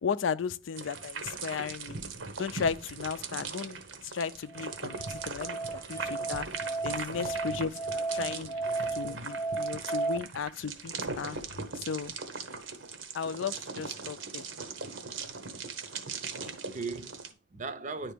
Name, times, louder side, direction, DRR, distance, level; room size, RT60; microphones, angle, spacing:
voice 1, 0.0-2.0 2.4-3.8 4.0-6.5 6.8-8.5 8.9-11.4 11.7-12.1 13.1-14.4 16.4-16.6, left 6 dB, 80° left, 0.4 m, -35 dB
sound 1, 0.8-17.3, right 4 dB, 85° right, 1.1 m, -40 dB
Musical instrument, 4.5-10.2, right 3 dB, 10° left, 0.4 m, -34 dB
voice 2, 6.6-7.0 7.9-8.0 8.3-9.5 16.7-18.1, right 4 dB, 40° right, 0.6 m, -41 dB
10.0 x 4.3 x 3.4 m
head